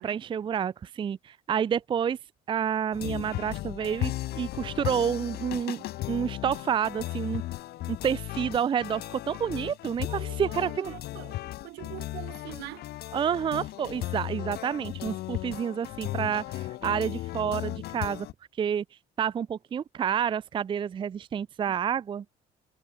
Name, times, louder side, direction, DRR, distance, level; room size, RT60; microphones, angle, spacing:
voice 1, 0.0-2.2 2.5-7.4 7.9-10.9 13.1-18.3 18.6-18.8 19.2-22.2, right 8 dB, 30° right, 0.4 m, -29 dB
sound 1, 2.9-18.3, left 16 dB, 70° left, 0.7 m, -36 dB
voice 2, 10.1-12.9 21.7-21.8, right 20 dB, 85° right, 1.2 m, -44 dB
cardioid pair, 110°, 17 cm